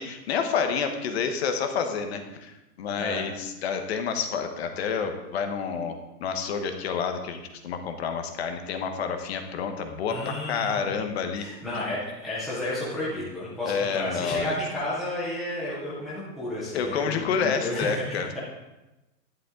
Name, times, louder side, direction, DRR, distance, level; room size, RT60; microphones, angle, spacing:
voice 1, 0.0-11.5 13.7-14.5 16.7-18.4, left 6 dB, 40° left, 6 dB, 1.2 m, -29 dB
voice 2, 10.1-10.9 11.4-18.4, left 1 dB, ahead, -10 dB, 0.6 m, -32 dB
11.0 x 10.5 x 3.7 m, 1.0 s
hypercardioid pair, 165°, 49 cm